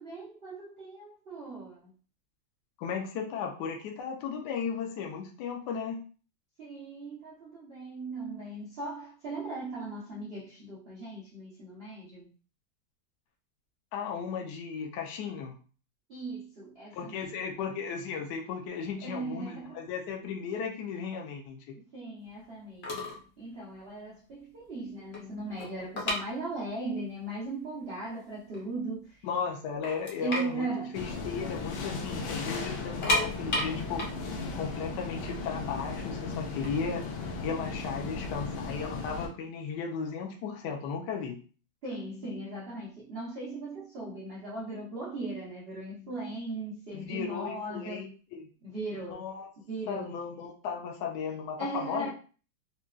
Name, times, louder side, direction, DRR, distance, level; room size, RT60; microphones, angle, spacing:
voice 1, 0.0-1.9 6.6-12.3 16.1-17.4 19.0-19.8 21.9-29.2 30.1-31.0 41.8-48.1 48.6-49.3 49.7-50.2 51.6-52.1, right 2 dB, 65° right, 0.6 m, -38 dB
voice 2, 2.8-6.0 13.9-15.6 16.9-21.8 29.2-34.1 34.5-37.0 37.4-41.4 46.9-48.5 49.1-49.5 49.9-52.1, left 6 dB, 70° left, 1.1 m, -35 dB
sound 1, 22.6-22.7 22.8-23.3 23.6-23.8 24.3-24.4 24.7-26.9 27.2-27.3 27.9-28.0 28.4-29.1 29.5-29.6 29.8-31.8 32.1-32.2 32.8-35.7 36.4-38.2, left 1 dB, 50° left, 0.7 m, -33 dB
sound 2, 30.9-39.3, left 4 dB, 90° left, 1.4 m, -36 dB
3.8 x 2.2 x 2.3 m
omnidirectional pair, 2.1 m